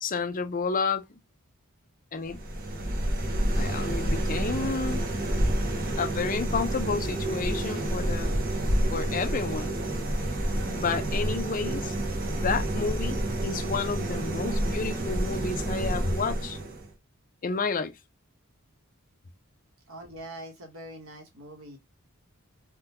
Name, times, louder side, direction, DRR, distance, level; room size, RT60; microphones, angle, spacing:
voice 1, 0.0-1.0 2.1-2.4 3.6-5.0 6.0-8.3 8.9-9.8 10.6-12.0 12.3-13.2 13.4-16.6 17.4-17.9, left 4 dB, 40° left, 0.5 m, -30 dB
sound 1, 2.2-16.9, right 1 dB, 40° right, 0.8 m, -29 dB
voice 2, 19.9-21.8, right 1 dB, 65° right, 1.2 m, -43 dB
3.6 x 2.3 x 2.8 m
head